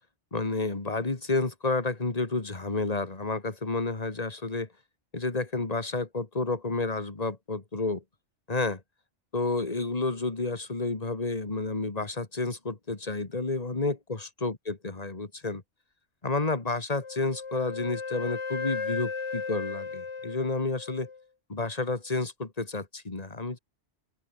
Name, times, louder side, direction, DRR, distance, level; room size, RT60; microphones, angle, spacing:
voice 1, 0.3-4.7 5.1-8.0 8.5-8.8 9.3-15.6 16.2-21.1 21.5-23.6, left 3 dB, 35° left, 2.2 m, -30 dB
Wind instrument woodwind instrument, 17.0-21.2, left 5 dB, 80° left, 2.1 m, -35 dB
open air
omnidirectional pair, 1.2 m